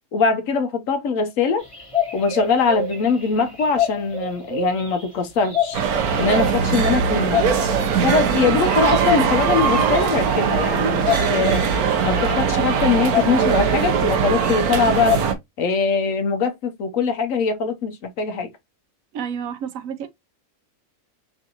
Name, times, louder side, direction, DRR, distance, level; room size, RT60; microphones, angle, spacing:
voice 1, 0.1-1.6 2.1-5.8 6.2-7.5 8.0-11.6 12.0-15.2 15.6-18.5, left 5 dB, 70° left, 1.0 m, -22 dB
sound 1, 1.6-15.2, left 4 dB, 25° left, 1.4 m, -28 dB
sound 2, 5.7-15.3, right 6 dB, 90° right, 1.3 m, -21 dB
voice 2, 19.1-20.1, right 7 dB, 70° right, 1.0 m, -30 dB
5.5 x 2.5 x 2.8 m
omnidirectional pair, 1.5 m